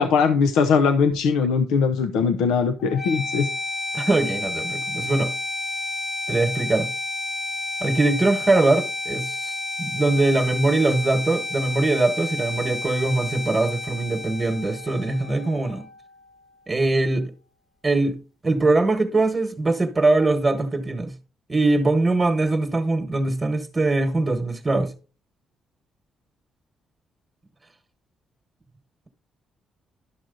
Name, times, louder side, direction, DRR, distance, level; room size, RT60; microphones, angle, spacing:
voice 1, 0.0-3.5, left 5 dB, 90° left, 0.7 m, -20 dB
sound 1, 2.8-16.8, left 2 dB, 15° left, 1.1 m, -31 dB
voice 2, 3.9-5.3 6.3-6.9 7.8-9.5 9.8-15.9 16.7-17.3 17.8-18.2 18.4-21.1 21.5-24.9, right 2 dB, 25° right, 1.3 m, -22 dB
11.5 x 6.2 x 3.9 m
cardioid pair, 90°, 0 cm